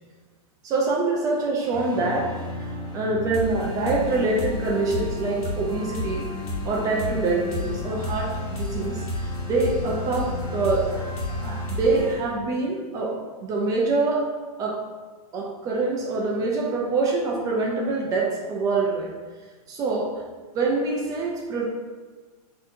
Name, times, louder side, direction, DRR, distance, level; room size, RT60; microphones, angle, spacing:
voice 1, 0.6-6.3 6.6-11.0 11.4-14.3 14.6-14.8 15.3-19.1 19.7-20.1 20.5-21.7, right 3 dB, 20° right, -1 dB, 0.3 m, -25 dB
sound 1, 1.7-12.2, left 1 dB, 60° left, 1.2 m, -31 dB
4.1 x 2.8 x 2.6 m, 1.4 s
hypercardioid pair, 150°, 20 cm